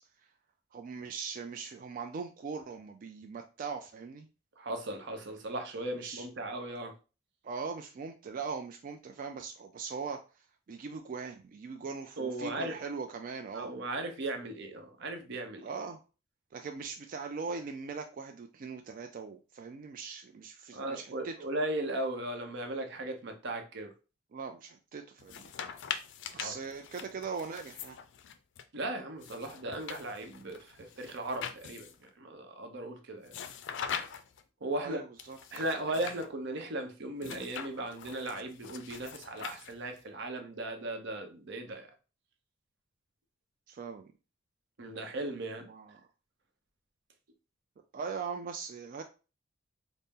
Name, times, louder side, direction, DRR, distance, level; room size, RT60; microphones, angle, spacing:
voice 1, 0.7-4.3 5.9-6.3 7.4-10.2 10.7-13.7 15.6-16.0 16.5-21.3 24.3-25.5 26.3-28.0 34.8-35.6 43.7-44.1 45.7-46.1 47.9-49.0, right 5 dB, 45° right, 5 dB, 0.3 m, -40 dB
voice 2, 4.6-6.9 12.2-12.8 13.5-15.6 20.7-23.9 26.3-26.5 28.7-31.9 32.2-33.3 34.6-35.0 35.5-41.9 44.8-45.7, right 1 dB, 65° right, 5 dB, 0.7 m, -37 dB
sound 1, 25.2-28.6 29.2-32.1 33.3-34.4 35.2-36.3 37.2-40.0, left 8 dB, 65° left, 0.4 m, -42 dB
4.1 x 2.0 x 3.5 m, 0.33 s
head